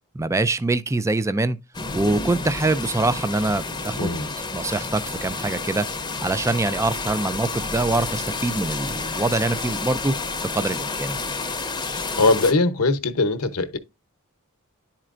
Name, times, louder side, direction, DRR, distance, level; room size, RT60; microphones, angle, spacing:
voice 1, 0.1-1.6 1.9-5.9 6.2-10.1 10.5-11.2, right 2 dB, 15° right, 0.4 m, -24 dB
sound 1, 1.7-12.5, left 3 dB, 20° left, 0.7 m, -30 dB
voice 2, 4.0-4.3 11.8-13.8, left 3 dB, 75° left, 0.9 m, -21 dB
11.0 x 4.4 x 2.5 m
head